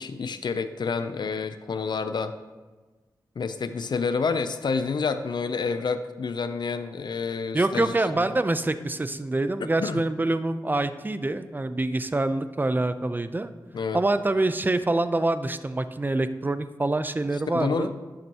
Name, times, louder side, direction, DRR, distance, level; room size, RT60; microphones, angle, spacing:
voice 1, 0.0-2.3 3.4-7.9 9.8-10.0 13.7-14.0 17.5-17.9, left 5 dB, 70° left, 10 dB, 0.5 m, -28 dB
voice 2, 7.5-13.5 13.9-17.9, right 2 dB, 25° right, 11 dB, 0.6 m, -25 dB
11.5 x 7.6 x 2.9 m, 1.3 s
cardioid pair, 55°, 8 cm